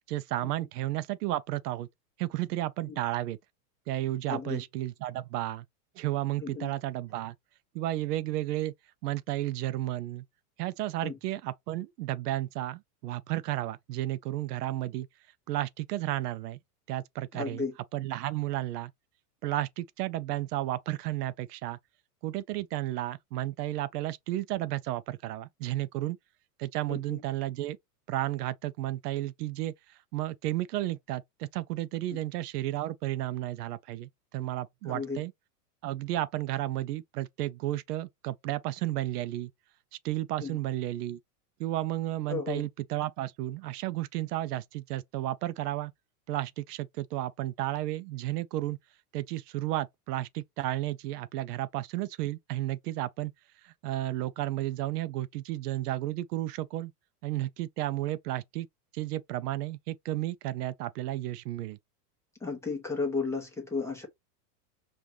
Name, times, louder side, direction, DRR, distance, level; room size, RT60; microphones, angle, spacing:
voice 1, 0.1-1.9 2.2-3.4 3.9-5.7 6.0-7.4 7.7-8.7 9.0-10.2 10.6-15.1 15.5-16.6 16.9-17.6 17.9-18.9 19.4-21.8 22.2-26.2 26.6-27.8 28.1-35.3 35.8-39.5 40.0-41.2 41.6-45.9 46.3-48.8 49.1-53.3 53.6-56.9 57.2-58.7 58.9-61.8, right 15 dB, 75° right, 0.6 m, -33 dB
voice 2, 4.3-4.6 6.4-6.7 11.0-11.2 17.3-17.7 26.9-27.2 32.1-32.2 34.8-35.2 40.4-40.6 42.3-42.7 62.4-64.1, left 4 dB, 5° left, 0.8 m, -34 dB
5.2 x 2.5 x 2.9 m
supercardioid pair, 155°, 47 cm